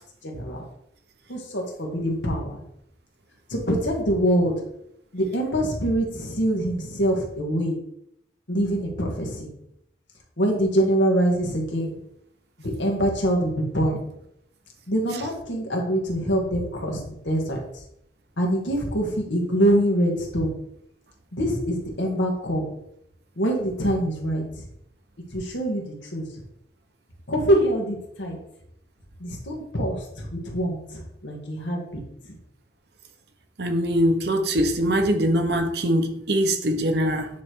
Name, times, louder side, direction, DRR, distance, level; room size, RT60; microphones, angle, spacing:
voice 1, 0.2-0.6 1.3-2.6 3.5-4.5 5.1-7.8 8.5-9.5 10.4-11.9 12.6-14.0 14.9-17.6 18.4-20.6 21.3-22.7 23.4-24.4 25.3-26.2 27.3-28.4 29.2-30.8 31.2-32.0, equal, 85° left, 1 dB, 1.9 m, -24 dB
voice 2, 33.6-37.3, equal, 65° right, 6 dB, 0.9 m, -22 dB
9.3 x 3.3 x 4.6 m, 0.77 s
head